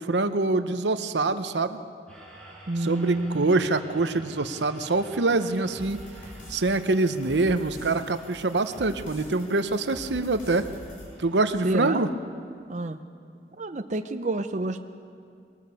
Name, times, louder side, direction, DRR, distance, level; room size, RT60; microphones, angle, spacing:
voice 1, 0.0-1.8 2.8-6.0 6.5-10.6 11.2-12.1, right 3 dB, 80° right, 10 dB, 0.9 m, -25 dB
sound 1, 2.1-12.1, right 1 dB, 5° left, 6.8 m, -51 dB
voice 2, 2.7-3.5 11.6-12.0 12.7-13.0 13.6-14.8, right 2 dB, 40° right, 7 dB, 0.6 m, -28 dB
sound 2, 5.7-11.1, left 1 dB, 50° left, 5.2 m, -45 dB
22.0 x 19.0 x 6.9 m, 2.3 s
head